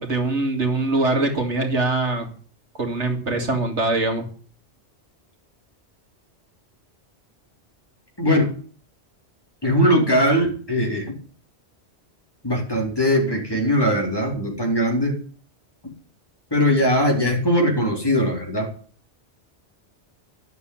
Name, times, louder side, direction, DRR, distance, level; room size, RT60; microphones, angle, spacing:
voice 1, 0.0-2.3 2.8-4.3, right 2 dB, 90° right, 4 dB, 2.7 m, -23 dB
voice 2, 8.2-8.5 9.6-11.1 12.4-15.2 16.5-18.7, equal, 20° left, 0 dB, 4.3 m, -20 dB
11.5 x 8.0 x 8.9 m, 0.43 s
omnidirectional pair, 1.2 m